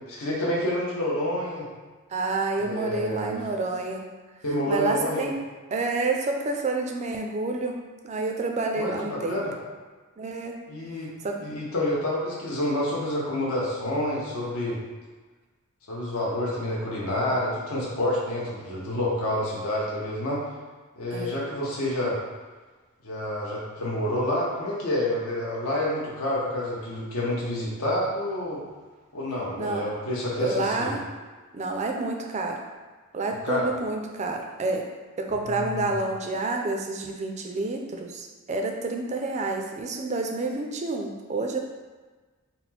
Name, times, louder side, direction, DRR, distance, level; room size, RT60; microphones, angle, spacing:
voice 1, 0.1-1.7 2.6-3.4 4.4-5.4 8.8-9.5 10.7-11.1 11.4-14.8 15.9-20.4 21.0-22.2 23.0-28.6 29.1-31.0 33.4-33.7 35.4-35.9, left 1 dB, 70° left, -5 dB, 0.9 m, -28 dB
voice 2, 2.1-4.0 4.7-5.3 5.7-7.7 8.0-9.4 10.2-10.5 11.2-11.4 21.1-21.4 29.6-29.8 30.4-31.0 31.5-32.6 33.1-34.8 35.3-41.6, right 3 dB, 30° right, 2 dB, 0.4 m, -29 dB
4.1 x 2.0 x 4.2 m, 1.3 s
head